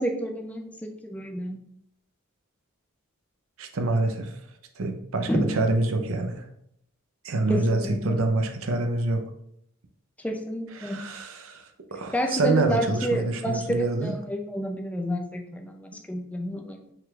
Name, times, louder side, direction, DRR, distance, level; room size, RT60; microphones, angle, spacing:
voice 1, 0.0-1.6 5.3-5.5 7.5-8.3 10.2-11.0 12.1-16.9, equal, 5° left, 4 dB, 0.4 m, -30 dB
voice 2, 3.6-4.3 4.8-6.5 7.2-9.2 10.7-14.1, right 2 dB, 65° right, 6 dB, 0.6 m, -26 dB
5.6 x 3.7 x 2.4 m, 0.74 s
head